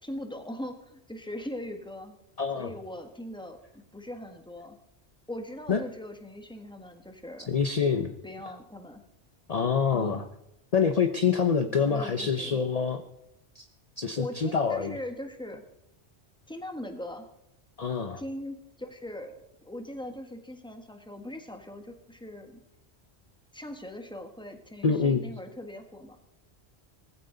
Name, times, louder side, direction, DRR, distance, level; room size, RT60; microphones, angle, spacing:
voice 1, 0.0-2.2 2.5-4.8 5.3-7.5 8.2-9.0 9.9-10.2 11.9-12.6 14.2-15.6 16.5-17.3 18.2-19.3 19.6-22.6 23.5-26.2, left 1 dB, 5° left, 5 dB, 1.5 m, -40 dB
voice 2, 2.4-2.7 5.7-5.8 7.5-8.1 9.5-10.2 10.7-13.0 13.5-13.7 14.0-15.0 17.8-18.2 24.8-25.2, left 6 dB, 40° left, 7 dB, 0.8 m, -26 dB
18.5 x 15.5 x 3.9 m, 0.82 s
omnidirectional pair, 1.1 m